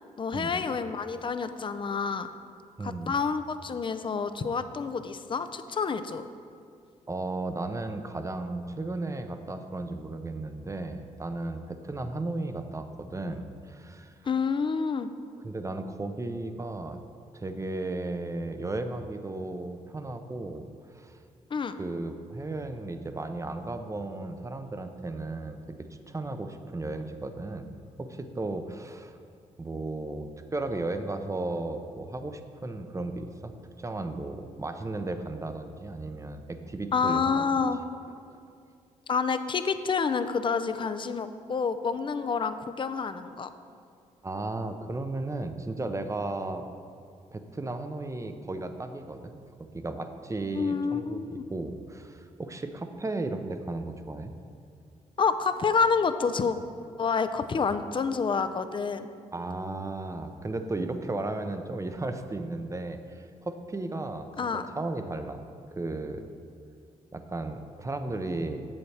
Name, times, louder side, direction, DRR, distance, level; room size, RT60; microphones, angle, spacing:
voice 1, 0.2-2.3 2.8-6.3 14.2-15.1 21.5-21.7 36.9-37.8 39.1-43.5 50.5-51.4 55.2-56.6 57.0-59.1 64.4-64.7, left 5 dB, 35° left, 10 dB, 0.5 m, -28 dB
voice 2, 2.8-3.1 7.1-14.1 15.4-17.0 17.3-20.7 20.9-21.2 21.8-25.6 26.1-27.7 28.0-29.2 29.6-37.4 38.3-38.4 44.2-46.6 47.3-49.4 49.7-54.3 59.3-65.4 65.7-66.2 67.1-68.7, right 2 dB, 20° right, 8 dB, 0.6 m, -35 dB
7.7 x 7.0 x 3.3 m, 2.3 s
supercardioid pair, 55°, 14 cm